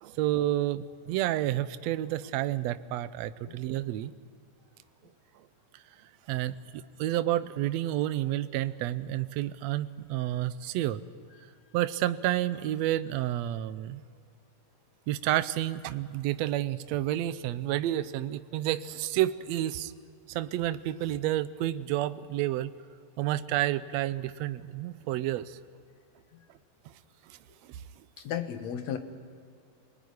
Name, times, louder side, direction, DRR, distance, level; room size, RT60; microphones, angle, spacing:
voice 1, 0.0-4.1 6.3-11.0 11.7-14.0 15.1-19.9 20.3-22.7 23.2-25.6 27.3-27.4 27.6-27.8, right 14 dB, 80° right, 13 dB, 1.5 m, -30 dB
voice 2, 28.2-29.0, left 9 dB, 60° left, 7 dB, 2.4 m, -34 dB
27.0 x 19.5 x 9.7 m, 2.3 s
omnidirectional pair, 3.9 m